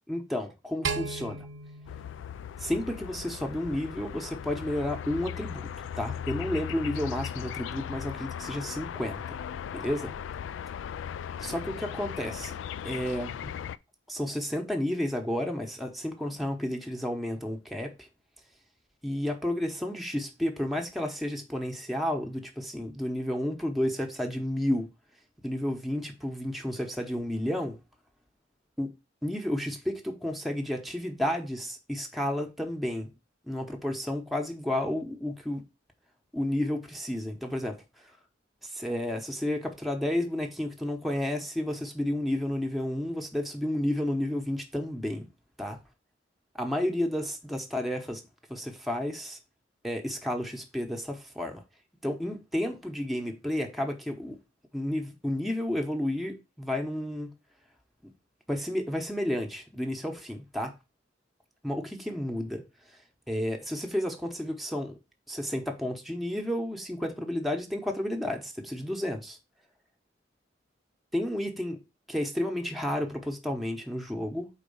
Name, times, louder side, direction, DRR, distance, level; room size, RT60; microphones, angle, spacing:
voice 1, 0.1-1.5 2.6-5.7 6.0-9.4 9.7-10.1 11.4-12.5 12.8-13.3 14.1-17.9 19.0-24.9 25.4-27.8 28.8-28.9 29.2-33.1 33.5-35.6 36.3-37.8 38.6-45.3 45.6-45.8 46.6-48.2 48.5-49.4 49.8-51.6 52.0-54.4 54.7-57.3 58.5-60.7 61.6-62.6 63.3-65.0 65.3-69.4 71.1-71.8 72.1-74.5, left 1 dB, ahead, 0.9 m, -31 dB
sound 1, 0.8-3.2, right 4 dB, 75° right, 0.7 m, -36 dB
sound 2, 1.9-13.8, left 8 dB, 80° left, 0.3 m, -38 dB
4.4 x 4.1 x 5.4 m
head